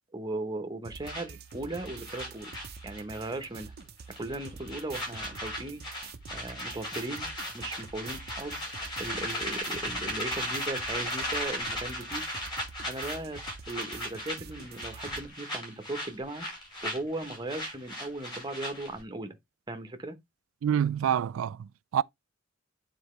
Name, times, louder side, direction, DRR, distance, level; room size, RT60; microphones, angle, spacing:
voice 1, 0.1-2.5 2.8-3.7 4.2-5.8 6.3-7.3 7.5-8.6 9.0-12.3 12.9-13.4 13.7-16.5 16.8-19.4 19.7-20.2, right 2 dB, 20° right, 1.0 m, -37 dB
sound 1, 0.8-15.3, right 4 dB, 50° right, 0.7 m, -47 dB
sound 2, 1.0-3.3 3.6-3.8 4.1-19.0, equal, 25° left, 5.4 m, -36 dB
voice 2, 20.6-22.0, right 9 dB, 80° right, 0.3 m, -27 dB
9.0 x 4.1 x 3.2 m
head